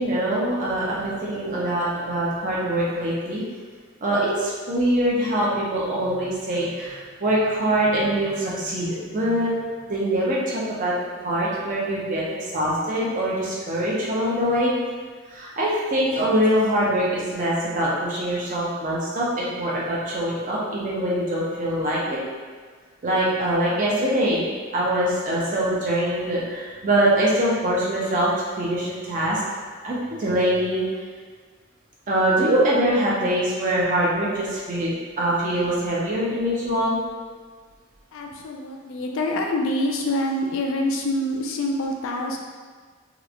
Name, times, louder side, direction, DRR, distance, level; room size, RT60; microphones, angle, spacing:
voice 1, 0.0-3.4 4.0-10.9 11.2-12.2 12.5-14.7 15.3-22.2 23.0-28.3 28.6-29.4 29.8-30.9 32.1-37.0, right 1 dB, 40° right, -6 dB, 0.5 m, -23 dB
voice 2, 38.1-42.4, left 1 dB, 65° left, 1 dB, 0.3 m, -26 dB
2.9 x 2.0 x 2.4 m, 1.5 s
head